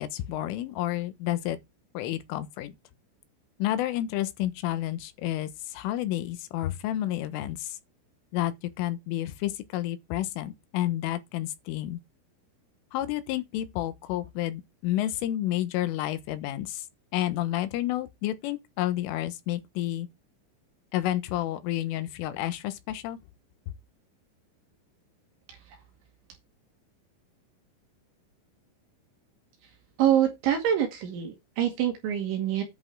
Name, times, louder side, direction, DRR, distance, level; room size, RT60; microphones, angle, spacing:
voice 1, 0.0-1.6 2.0-2.7 3.6-7.8 8.3-12.0 12.9-16.9 17.1-20.1 20.9-23.2, left 13 dB, 80° left, 3.7 m, -30 dB
voice 2, 30.0-32.6, right 10 dB, 70° right, 4.4 m, -25 dB
10.5 x 6.2 x 4.8 m
omnidirectional pair, 5.7 m